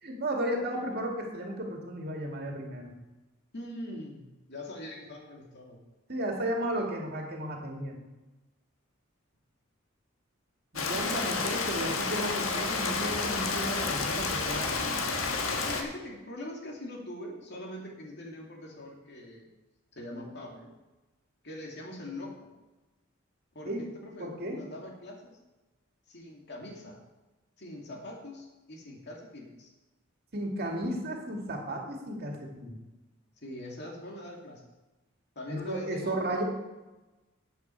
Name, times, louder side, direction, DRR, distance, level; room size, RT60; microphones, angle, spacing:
voice 1, 0.0-2.9 6.1-8.0 10.7-14.9 23.6-23.8 24.2-24.6 30.3-32.8 35.5-36.4, right 1 dB, 50° right, 1 dB, 2.2 m, -34 dB
voice 2, 3.5-5.8 15.6-19.5 20.0-20.7 21.4-22.3 23.5-25.3 26.1-27.0 27.6-29.7 33.4-34.6 35.4-36.2, left 1 dB, 55° left, 0 dB, 2.4 m, -42 dB
Rain, 10.8-15.8, left 4 dB, 85° left, 1.4 m, -30 dB
12.5 x 8.4 x 4.6 m, 1.1 s
head